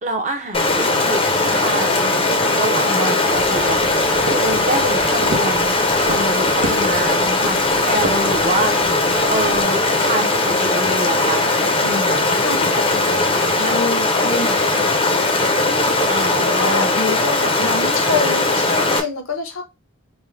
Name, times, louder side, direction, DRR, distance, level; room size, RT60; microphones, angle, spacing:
voice 1, 0.0-2.1 2.6-5.8 6.1-8.9 9.3-11.4 11.8-12.2 16.1-16.9, right 1 dB, 35° right, 0.9 m, -26 dB
Stream, 0.5-19.0, left 2 dB, 25° left, 0.7 m, -19 dB
sound 1, 3.3-9.6, right 2 dB, 65° right, 1.0 m, -32 dB
voice 2, 12.4-15.4 16.4-19.6, left 3 dB, 80° left, 1.1 m, -26 dB
5.3 x 2.3 x 3.3 m
head